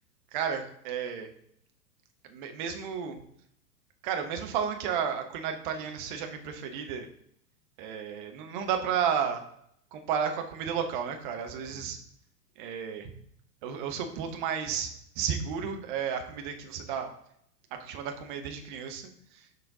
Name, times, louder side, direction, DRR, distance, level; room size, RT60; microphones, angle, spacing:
voice 1, 0.3-1.3 2.3-3.2 4.0-7.1 7.8-9.4 9.9-12.0 12.6-13.1 13.6-14.9 15.2-17.1 17.7-19.5, right 7 dB, 30° right, 5 dB, 0.9 m, -32 dB
6.6 x 4.2 x 3.7 m, 0.70 s
figure-of-eight pair, 105°, 49 cm